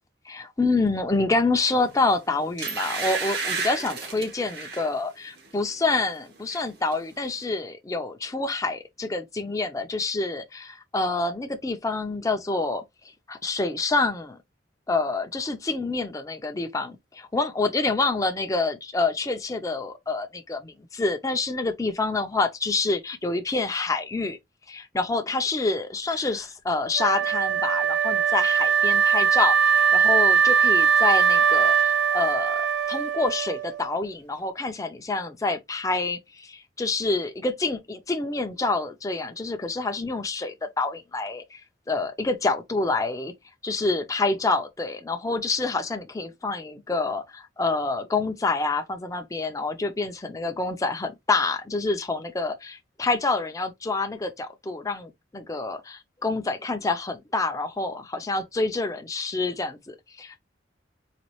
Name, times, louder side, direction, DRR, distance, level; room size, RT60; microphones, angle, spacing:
voice 1, 0.3-12.8 13.3-14.4 14.9-24.4 24.7-32.6 32.9-41.6 41.9-43.3 43.6-60.4, left 3 dB, 20° left, 0.5 m, -27 dB
sound 1, 1.9-2.1 2.6-4.9 5.4-5.6 5.9-6.6 6.9-7.0, right 4 dB, 60° right, 0.9 m, -32 dB
Wind instrument woodwind instrument, 27.0-34.0, right 7 dB, 80° right, 0.3 m, -21 dB
4.1 x 2.3 x 3.0 m
head